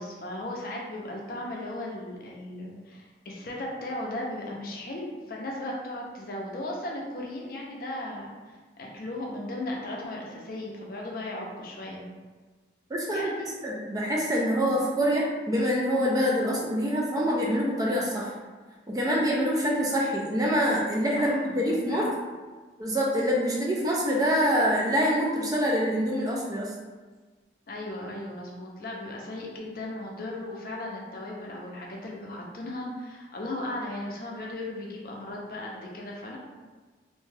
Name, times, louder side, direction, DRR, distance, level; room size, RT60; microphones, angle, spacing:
voice 1, 0.0-12.1 13.1-13.5 21.1-22.1 27.7-36.4, left 1 dB, 50° left, -2 dB, 0.5 m, -36 dB
voice 2, 12.9-18.3 18.9-22.0 22.8-26.7, equal, 20° right, -3 dB, 0.3 m, -25 dB
2.6 x 2.2 x 3.2 m, 1.4 s
head